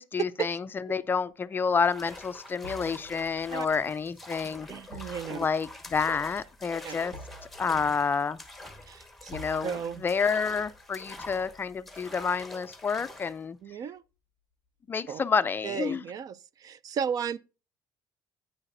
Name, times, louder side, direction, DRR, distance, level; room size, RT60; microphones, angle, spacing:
voice 1, 0.0-4.7 5.0-7.1 7.6-8.4 9.3-13.6 14.9-16.0, left 5 dB, 25° left, 0.4 m, -29 dB
sound 1, 1.2-1.3 2.6-13.6 14.0-14.1, right 1 dB, 80° right, 6.0 m, -51 dB
sound 2, 1.8-13.4, left 2 dB, ahead, 1.1 m, -46 dB
voice 2, 4.7-5.5 6.8-7.0 8.9-9.3 9.6-10.0 13.6-14.0 15.1-15.2 15.6-17.4, right 7 dB, 45° right, 0.4 m, -34 dB
9.9 x 9.0 x 2.6 m
cardioid pair, 145°, 9 cm